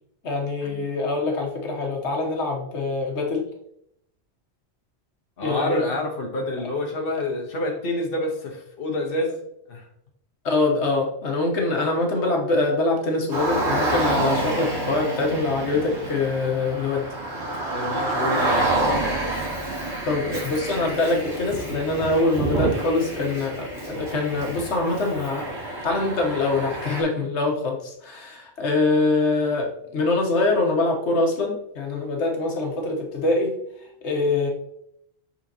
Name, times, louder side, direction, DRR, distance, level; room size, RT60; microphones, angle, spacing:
voice 1, 0.2-3.4 5.4-5.9 10.4-17.1 20.1-25.5 25.8-33.5 34.0-34.5, left 2 dB, 85° left, 1 dB, 1.4 m, -24 dB
voice 2, 5.4-9.4 9.7-9.8 17.7-19.0, left 1 dB, 55° left, 0 dB, 1.3 m, -28 dB
Car, 13.3-27.0, right 2 dB, 80° right, 2.6 m, -28 dB
6.2 x 5.7 x 2.8 m, 0.74 s
omnidirectional pair, 1.1 m